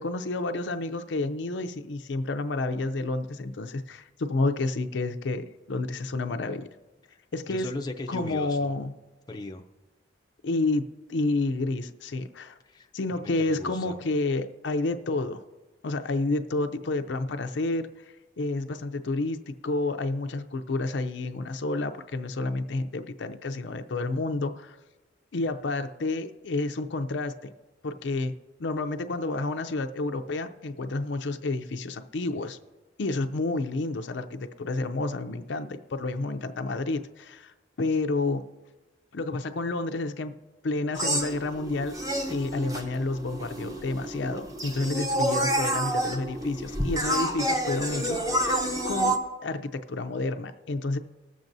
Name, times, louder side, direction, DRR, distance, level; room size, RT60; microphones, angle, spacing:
voice 1, 0.0-6.7 7.3-7.7 8.1-8.9 10.4-12.6 12.9-15.4 15.8-17.9 18.4-24.8 25.3-27.5 27.8-28.3 28.6-32.6 33.0-38.4 39.1-40.3 40.6-42.0 42.3-48.5 48.8-51.0, left 2 dB, 75° left, 8 dB, 0.5 m, -30 dB
voice 2, 7.5-8.7 9.3-9.7 12.6-14.0, left 1 dB, 20° left, 3 dB, 0.5 m, -38 dB
sound 1, 40.9-49.2, right 1 dB, 20° right, 0.8 m, -29 dB
20.0 x 7.3 x 2.6 m, 1.2 s
head